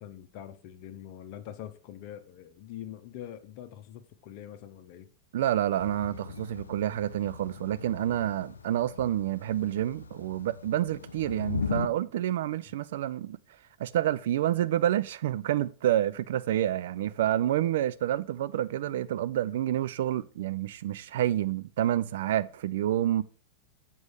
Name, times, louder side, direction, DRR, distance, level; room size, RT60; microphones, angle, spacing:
voice 1, 0.0-5.1, left 11 dB, 45° left, 0.8 m, -44 dB
voice 2, 5.3-13.4 13.8-23.2, right 12 dB, 55° right, 0.3 m, -28 dB
Thunder / Rain, 5.8-11.9, left 5 dB, 75° left, 0.4 m, -38 dB
7.9 x 5.4 x 4.8 m
figure-of-eight pair, 90°, 0 cm